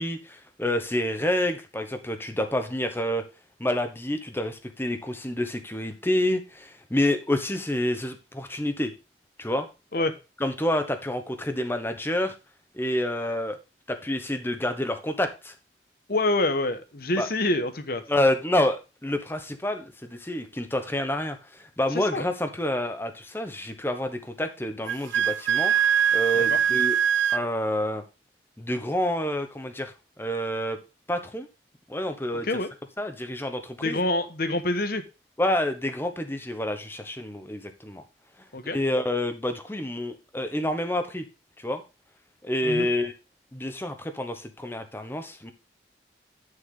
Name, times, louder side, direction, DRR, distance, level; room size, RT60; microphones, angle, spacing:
voice 1, 0.0-3.2 3.6-8.9 9.4-9.7 10.4-12.3 12.7-13.6 13.9-15.5 17.2-17.3 18.1-26.9 27.3-28.0 28.6-30.8 31.1-31.5 31.9-32.5 33.0-34.0 35.4-38.0 38.7-41.2 41.6-41.8 42.4-43.1 43.5-45.5, left 1 dB, 10° left, 7 dB, 1.0 m, -28 dB
voice 2, 16.1-18.0 21.9-22.3 26.3-26.6 32.3-32.7 33.8-35.0 38.5-38.8 42.6-42.9, left 2 dB, 55° left, 9 dB, 1.1 m, -26 dB
Wind instrument woodwind instrument, 24.8-27.4, right 8 dB, 85° right, 0.3 m, -22 dB
9.8 x 6.6 x 3.7 m, 0.29 s
head